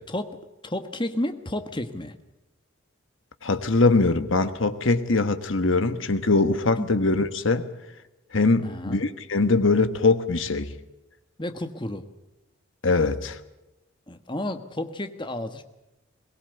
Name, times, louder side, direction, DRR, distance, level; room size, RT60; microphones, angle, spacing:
voice 1, 0.1-0.4 0.6-2.2 6.8-6.9 8.6-9.0 11.4-12.1 14.1-15.6, left 1 dB, 25° left, 9 dB, 1.3 m, -31 dB
voice 2, 3.4-7.7 8.3-10.7 12.8-13.4, left 3 dB, 70° left, 11 dB, 1.4 m, -22 dB
22.5 x 19.0 x 8.0 m, 0.96 s
head